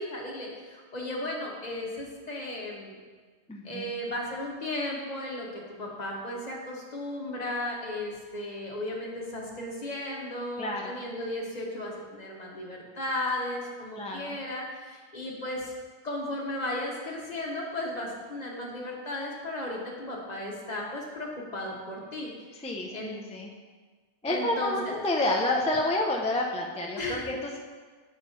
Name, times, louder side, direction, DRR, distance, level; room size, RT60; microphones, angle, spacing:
voice 1, 0.0-3.0 3.6-15.7 16.0-22.3 22.9-23.1 24.2-24.9 27.0-27.2, left 1 dB, 45° left, -2 dB, 1.2 m, -35 dB
voice 2, 3.5-3.8 10.6-11.0 14.0-14.4 22.5-23.5 24.2-27.6, left 2 dB, 10° left, 0 dB, 0.3 m, -29 dB
6.5 x 5.0 x 4.2 m, 1.5 s
omnidirectional pair, 1.0 m